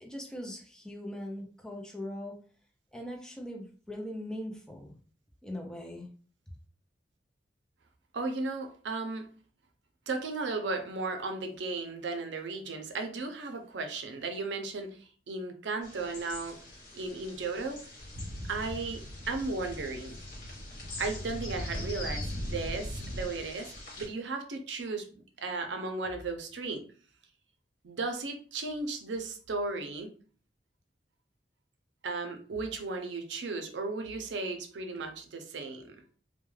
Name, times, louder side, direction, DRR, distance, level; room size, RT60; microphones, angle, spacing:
voice 1, 0.0-2.4 2.9-5.0 5.4-6.1, left 1 dB, 5° left, 0.4 m, -40 dB
voice 2, 8.1-9.3 10.1-16.6 16.9-17.8 18.5-20.2 21.0-25.1 25.4-26.8 27.8-30.1 32.0-35.9, right 3 dB, 85° right, 0.5 m, -35 dB
sound 1, 15.8-24.1, left 2 dB, 50° left, 1.2 m, -46 dB
sound 2, 18.0-23.2, equal, 40° right, 0.7 m, -39 dB
2.3 x 2.2 x 3.1 m
head